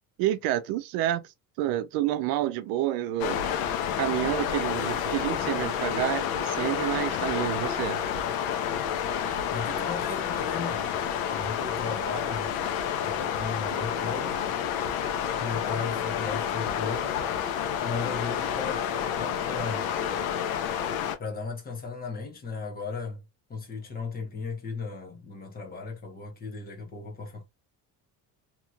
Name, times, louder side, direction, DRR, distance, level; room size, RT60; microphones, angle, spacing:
voice 1, 0.2-1.2 1.6-3.4 4.0-8.0, right 13 dB, 80° right, 0.6 m, -29 dB
sound 1, 3.2-21.2, left 8 dB, 80° left, 0.8 m, -29 dB
voice 2, 9.5-10.9 11.3-12.5 13.0-14.9 15.4-17.5 17.8-19.9 21.2-23.2 23.5-27.4, left 4 dB, 25° left, 1.0 m, -36 dB
3.0 x 2.9 x 2.3 m
cardioid pair, 145°, 36 cm